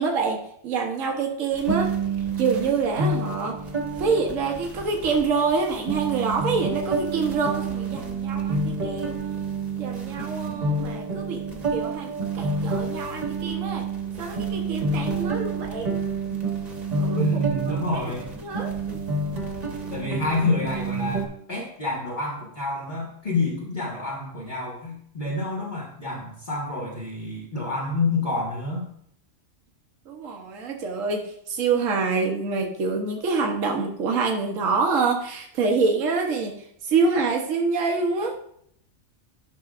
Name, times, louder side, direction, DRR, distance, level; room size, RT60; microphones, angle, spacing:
voice 1, 0.0-1.9 2.4-3.6 4.0-9.1 9.8-11.4 11.7-12.1 12.3-13.9 14.2-16.0 17.0-17.2 17.9-18.0 18.4-18.7 30.1-36.5 36.9-38.4, right 4 dB, 90° right, 2 dB, 1.3 m, -26 dB
sound 1, 1.5-21.3, right 3 dB, 35° right, 1.1 m, -29 dB
voice 2, 17.1-18.3 19.9-28.9, left 2 dB, 40° left, -5 dB, 1.5 m, -28 dB
12.0 x 6.0 x 2.4 m, 0.69 s
omnidirectional pair, 1.3 m